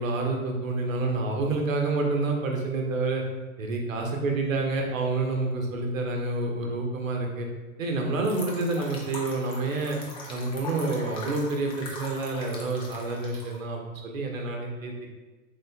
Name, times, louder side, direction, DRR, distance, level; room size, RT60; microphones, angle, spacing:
voice 1, 0.0-3.2 3.6-7.5 7.8-10.0 10.3-14.9, right 3 dB, 65° right, 1 dB, 1.1 m, -28 dB
Fast Dropping Water, 8.2-13.6, left 2 dB, 15° left, 0.5 m, -41 dB
4.0 x 3.6 x 3.4 m, 1.2 s
hypercardioid pair, 110°, 42 cm